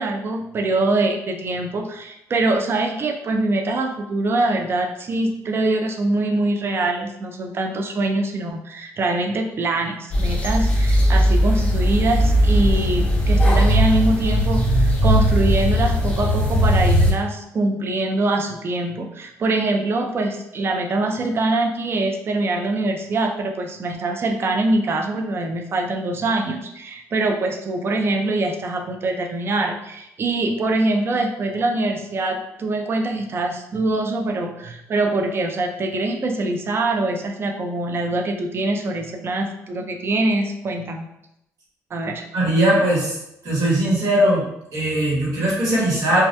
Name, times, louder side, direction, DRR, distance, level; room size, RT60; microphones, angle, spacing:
voice 1, 0.0-41.1 41.9-42.2, right 2 dB, 40° right, 4 dB, 0.4 m, -23 dB
sound 1, 10.1-17.1, equal, 20° left, 0.6 m, -18 dB
voice 2, 42.3-43.2 43.4-44.4 44.7-46.2, right 1 dB, 65° right, -5 dB, 1.2 m, -19 dB
2.2 x 2.1 x 2.7 m, 0.83 s
cardioid pair, 80°, 6 cm